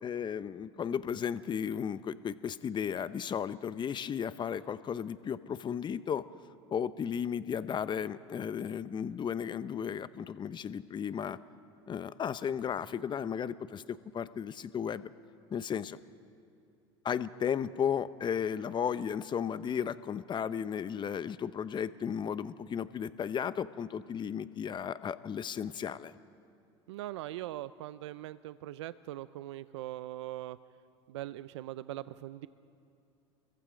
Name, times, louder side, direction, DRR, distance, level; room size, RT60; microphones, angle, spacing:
voice 1, 0.0-6.2 6.7-11.4 11.9-15.1 15.5-16.0 17.0-26.1, left 8 dB, 30° left, 14 dB, 0.8 m, -34 dB
voice 2, 26.9-30.6 31.1-32.5, right 15 dB, 80° right, 15 dB, 0.6 m, -41 dB
29.0 x 23.0 x 5.1 m, 2.7 s
hypercardioid pair, 80°, 14 cm